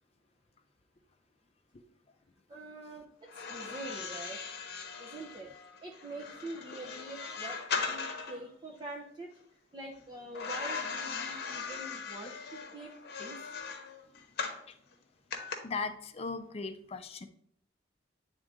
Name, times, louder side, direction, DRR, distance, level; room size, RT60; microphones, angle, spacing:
voice 1, 2.5-4.7 5.0-5.5 5.8-7.6 7.9-13.5, right 2 dB, 25° right, -2 dB, 0.6 m, -45 dB
sound 1, 3.3-8.4 10.3-14.6 15.3-15.5, left 5 dB, 60° left, 0.9 m, -39 dB
voice 2, 15.6-17.3, left 4 dB, 35° left, 8 dB, 0.5 m, -38 dB
9.2 x 3.6 x 3.6 m, 0.68 s
head